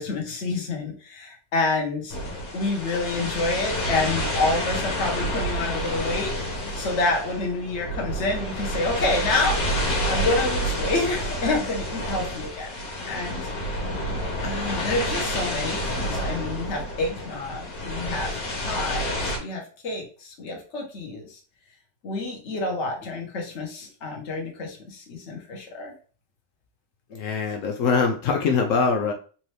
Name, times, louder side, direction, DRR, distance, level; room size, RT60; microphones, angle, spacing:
voice 1, 0.0-2.2 2.5-6.3 6.6-12.8 13.1-13.5 14.4-21.4 22.0-25.9, left 2 dB, 45° left, 1 dB, 1.2 m, -28 dB
sound 1, 2.1-19.4, equal, 75° left, 1.9 m, -29 dB
voice 2, 27.1-29.1, left 5 dB, 90° left, 3 dB, 0.7 m, -23 dB
4.2 x 2.7 x 3.2 m, 0.39 s
omnidirectional pair, 2.0 m